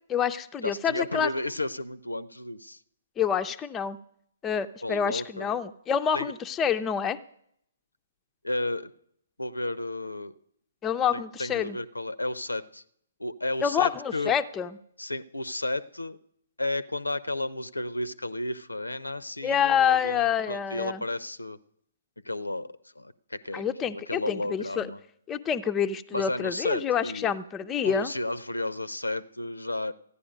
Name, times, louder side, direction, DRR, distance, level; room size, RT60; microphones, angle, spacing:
voice 1, 0.1-1.3 3.2-4.0 4.4-7.2 10.8-11.8 13.6-14.7 19.4-21.0 23.5-24.9 25.3-28.1, left 8 dB, 15° left, 8 dB, 0.4 m, -27 dB
voice 2, 0.6-2.8 4.8-5.5 6.1-6.3 8.4-8.9 9.4-10.3 11.1-12.8 13.2-14.3 15.0-16.2 16.6-21.6 22.2-22.7 23.0-23.6 23.9-25.0 26.1-27.3 27.8-29.9, left 2 dB, 85° left, 18 dB, 0.5 m, -32 dB
14.5 x 9.9 x 5.1 m, 0.70 s
figure-of-eight pair, 130°, 0 cm